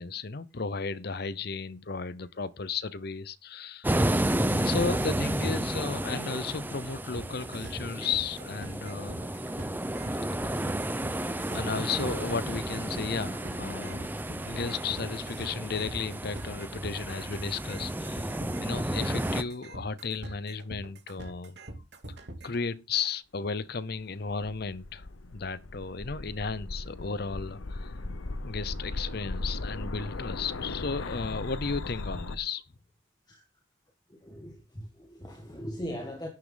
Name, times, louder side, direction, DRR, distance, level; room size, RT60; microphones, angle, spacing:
voice 1, 0.0-4.2 4.5-9.4 10.4-10.7 11.5-14.1 14.4-18.3 18.6-21.5 22.1-22.2 22.4-28.0 28.4-32.6, left 5 dB, 50° left, 0.7 m, -34 dB
sound 1, 3.8-19.4, right 1 dB, 10° right, 0.7 m, -32 dB
sound 2, 7.2-22.6, right 1 dB, 55° right, 2.8 m, -43 dB
sound 3, 24.0-32.3, left 2 dB, 85° left, 1.0 m, -37 dB
voice 2, 34.1-36.3, equal, 20° left, 1.8 m, -40 dB
11.5 x 10.5 x 3.9 m
head